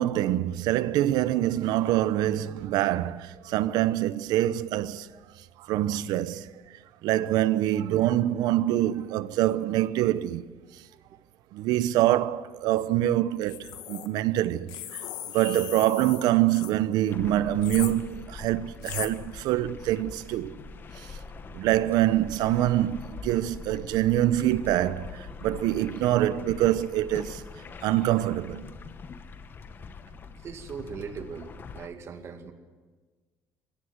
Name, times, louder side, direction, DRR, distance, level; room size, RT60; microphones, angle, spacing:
voice 1, 0.0-5.1 5.7-6.5 7.0-10.5 11.5-14.7 14.9-15.0 15.3-20.5 21.5-27.4 27.8-28.7, right 13 dB, 85° right, 0.8 m, -25 dB
sound 1, 13.4-14.1 14.7-16.7 17.6-17.9 18.8-19.1, left 12 dB, 90° left, 1.6 m, -38 dB
sound 2, 17.1-31.9, left 4 dB, 30° left, 1.1 m, -43 dB
voice 2, 30.3-32.5, right 6 dB, 45° right, 2.1 m, -40 dB
22.5 x 16.5 x 8.0 m
cardioid pair, 145°, 7 cm